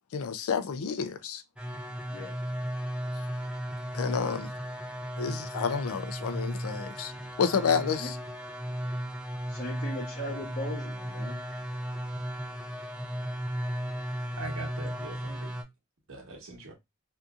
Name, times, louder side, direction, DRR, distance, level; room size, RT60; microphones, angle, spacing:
voice 1, 0.1-1.4 3.9-4.5 5.2-7.1 7.4-8.2, left 6 dB, 85° left, 0.4 m, -29 dB
sound 1, 1.6-15.6, equal, 5° right, 0.4 m, -35 dB
voice 2, 9.5-11.4, left 1 dB, 45° left, 0.9 m, -39 dB
voice 3, 14.4-15.6 16.1-16.8, right 2 dB, 75° right, 1.1 m, -42 dB
2.7 x 2.5 x 2.3 m
head